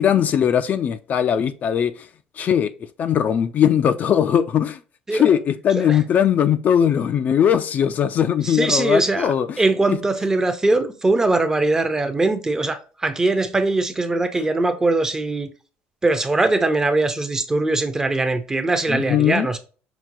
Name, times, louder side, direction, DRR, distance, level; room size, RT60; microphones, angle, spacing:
voice 1, 0.0-2.1 2.4-2.7 3.0-4.8 5.1-9.6 9.9-10.0 14.4-14.5 18.9-19.5, left 9 dB, 45° left, 0.3 m, -19 dB
voice 2, 8.4-15.5 16.0-19.6, right 2 dB, 15° right, 0.5 m, -21 dB
5.8 x 2.2 x 2.6 m
cardioid pair, 125°, 4 cm